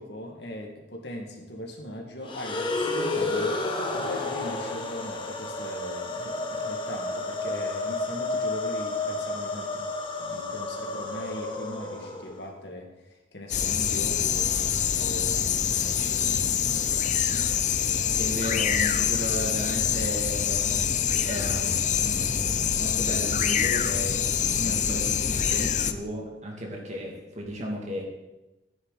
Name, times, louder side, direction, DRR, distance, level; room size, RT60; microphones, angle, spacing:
voice 1, 0.0-3.6 3.9-9.9 10.2-14.6 14.9-16.7, equal, 70° left, 1 dB, 2.2 m, -39 dB
sound 1, 2.2-12.5, left 2 dB, 30° left, 1.4 m, -31 dB
sound 2, 13.5-25.9, left 8 dB, 45° left, 0.6 m, -25 dB
voice 2, 17.8-21.0 21.3-28.0, equal, 40° right, 0 dB, 2.6 m, -35 dB
14.0 x 9.9 x 4.2 m, 1.0 s
head